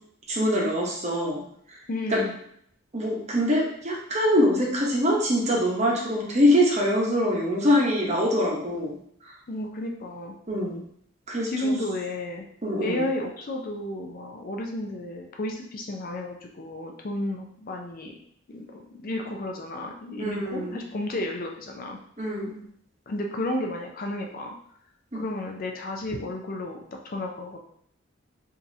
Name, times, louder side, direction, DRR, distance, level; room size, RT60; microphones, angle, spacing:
voice 1, 0.3-1.4 2.1-2.2 2.9-8.9 10.5-10.8 11.3-11.8 12.6-13.0 20.2-20.8 22.2-22.6 25.1-25.2, equal, 30° right, -2 dB, 0.9 m, -24 dB
voice 2, 1.9-2.3 9.5-10.3 11.5-12.5 12.8-18.2 18.5-22.0 23.1-24.5 25.1-27.6, left 1 dB, 40° left, 1 dB, 0.4 m, -32 dB
4.9 x 2.7 x 2.7 m, 0.67 s
head